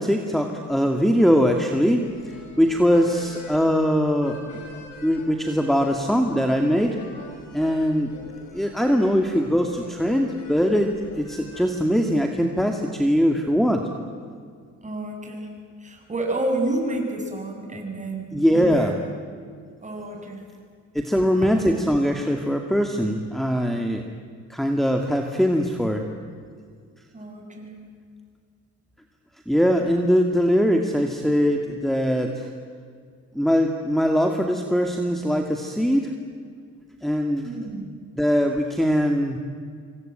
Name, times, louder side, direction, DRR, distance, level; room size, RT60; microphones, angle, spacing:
voice 1, 0.0-2.0 2.6-4.4 4.7-7.0 7.5-8.1 8.5-10.9 11.2-13.8 18.3-18.9 20.9-24.1 24.5-26.0 29.5-32.5 33.3-36.1 37.0-37.5 38.2-39.4, equal, ahead, 4 dB, 2.2 m, -21 dB
sound 1, 2.0-11.7, left 2 dB, 80° left, 7.2 m, -44 dB
voice 2, 14.8-15.5 15.8-19.0 19.8-20.4 21.4-21.5 27.1-27.8 37.4-37.8, right 2 dB, 25° right, 2 dB, 7.1 m, -29 dB
25.5 x 24.5 x 9.1 m, 2.1 s
cardioid pair, 90°, 30 cm